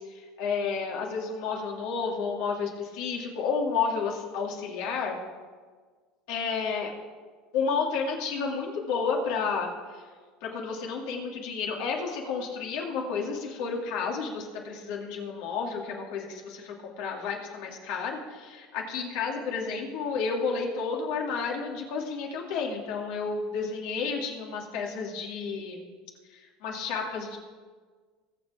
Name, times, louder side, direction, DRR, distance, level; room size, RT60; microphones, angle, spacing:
voice 1, 0.0-5.2 6.3-6.9 7.5-10.0 10.4-25.9 26.3-27.4, left 5 dB, 70° left, -1 dB, 2.6 m, -31 dB
21.5 x 7.3 x 3.6 m, 1.5 s
hypercardioid pair, 90°, 0 cm